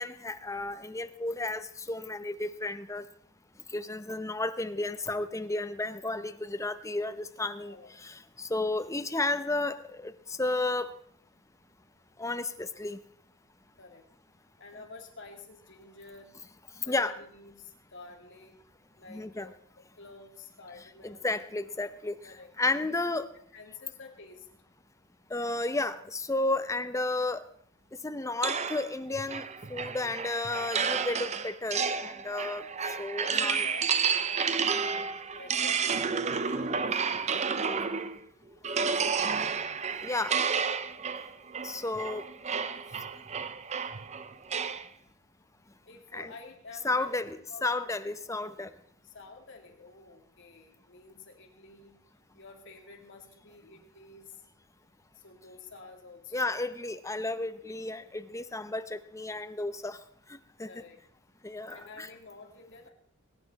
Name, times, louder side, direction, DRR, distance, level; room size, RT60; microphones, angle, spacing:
voice 1, 0.0-3.1 3.7-10.9 12.2-13.0 16.8-17.1 19.1-19.5 21.0-22.2 22.6-23.3 25.3-27.5 28.0-33.6 40.0-40.4 41.6-42.3 46.1-46.3 46.8-47.4 47.6-48.7 56.3-60.0 60.3-60.7 61.4-62.1, left 2 dB, 15° left, 10 dB, 0.7 m, -32 dB
voice 2, 7.6-7.9 13.8-14.1 14.6-16.4 16.8-18.6 19.0-19.5 20.0-21.3 22.2-23.0 23.5-24.5 33.1-34.8 35.3-38.1 45.8-47.2 47.5-47.7 48.0-48.1 49.0-52.0 52.3-54.4 55.1-56.6 60.6-61.0 61.7-62.9, left 3 dB, 55° left, 2 dB, 2.4 m, -50 dB
sound 1, 28.4-38.2 38.6-44.9, right 6 dB, 30° right, 0.6 m, -31 dB
21.5 x 9.5 x 4.1 m, 0.64 s
head